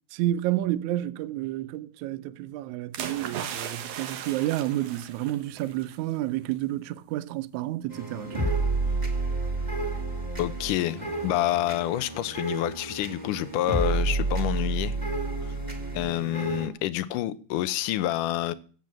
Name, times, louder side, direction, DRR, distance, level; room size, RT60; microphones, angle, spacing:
voice 1, 0.1-8.6, right 14 dB, 80° right, 1.7 m, -30 dB
sound 1, 2.9-6.0 6.3-6.5, right 8 dB, 65° right, 2.5 m, -37 dB
sound 2, 7.9-16.7, right 3 dB, 15° right, 2.0 m, -30 dB
voice 2, 10.4-15.0 15.9-18.5, left 14 dB, 75° left, 2.1 m, -28 dB
16.0 x 7.0 x 7.5 m
omnidirectional pair, 4.2 m